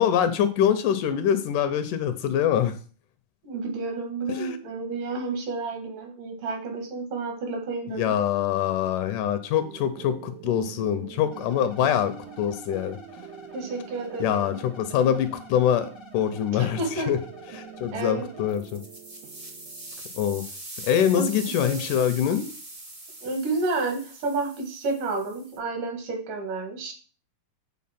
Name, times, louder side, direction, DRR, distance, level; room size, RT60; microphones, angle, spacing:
voice 1, 0.0-2.8 4.3-4.6 7.9-13.0 14.2-17.2 17.5-18.8 20.1-20.5 20.8-22.5, left 9 dB, 80° left, 10 dB, 2.1 m, -24 dB
voice 2, 3.4-8.1 13.5-14.6 16.6-17.1 17.9-18.3 21.1-21.8 23.2-26.9, right 3 dB, 70° right, 3 dB, 3.3 m, -30 dB
sound 1, 9.5-20.0, right 11 dB, 85° right, 2.3 m, -45 dB
sound 2, 11.3-18.5, left 3 dB, 55° left, 0.6 m, -48 dB
sound 3, 18.5-25.6, right 1 dB, 35° right, 0.7 m, -42 dB
8.6 x 3.9 x 5.8 m, 0.39 s
omnidirectional pair, 3.9 m